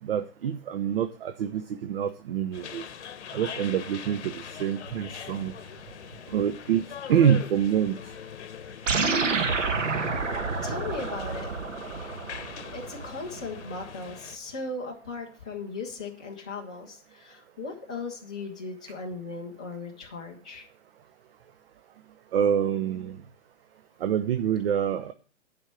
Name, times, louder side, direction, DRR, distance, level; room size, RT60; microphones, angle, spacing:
voice 1, 0.0-2.9 3.3-5.5 6.3-8.0 22.3-23.2 24.0-25.1, right 9 dB, 50° right, 10 dB, 0.8 m, -26 dB
sound 1, 2.5-14.4, left 7 dB, 65° left, 1.0 m, -42 dB
sound 2, 8.9-13.5, right 4 dB, 85° right, 1.9 m, -29 dB
voice 2, 10.6-11.5 12.7-20.7, left 3 dB, 5° left, -1 dB, 0.3 m, -37 dB
10.0 x 5.3 x 6.1 m, 0.39 s
hypercardioid pair, 140°, 37 cm